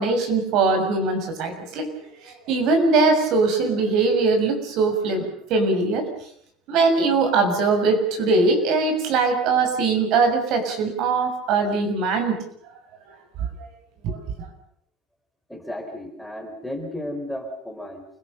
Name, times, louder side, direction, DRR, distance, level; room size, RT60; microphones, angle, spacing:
voice 1, 0.0-1.9 2.2-6.0 6.7-12.4 14.0-14.2, right 3 dB, 60° right, 6 dB, 6.7 m, -21 dB
voice 2, 15.5-18.1, left 1 dB, ahead, 3 dB, 4.5 m, -33 dB
29.0 x 17.5 x 6.8 m, 0.66 s
supercardioid pair, 125°, 0 cm